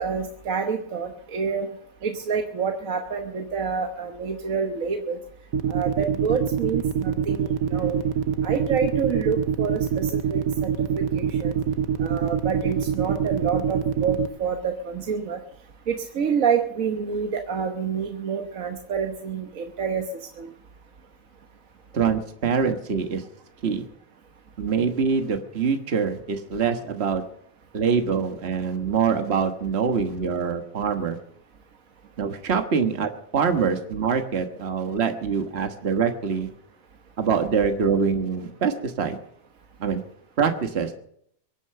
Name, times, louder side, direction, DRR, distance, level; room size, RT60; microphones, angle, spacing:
voice 1, 0.0-1.7 2.0-5.2 5.7-8.0 8.4-11.6 12.0-15.4 15.9-20.1 20.4-20.5, right 6 dB, 70° right, 4 dB, 1.5 m, -28 dB
sound 1, 5.5-14.3, right 8 dB, 90° right, 1.3 m, -24 dB
voice 2, 21.9-23.2 23.6-23.8 24.6-27.2 27.7-31.2 32.2-36.5 37.2-39.2 39.8-40.0 40.4-40.9, right 6 dB, 50° right, 6 dB, 1.6 m, -24 dB
23.5 x 8.3 x 6.7 m, 0.69 s
omnidirectional pair, 1.5 m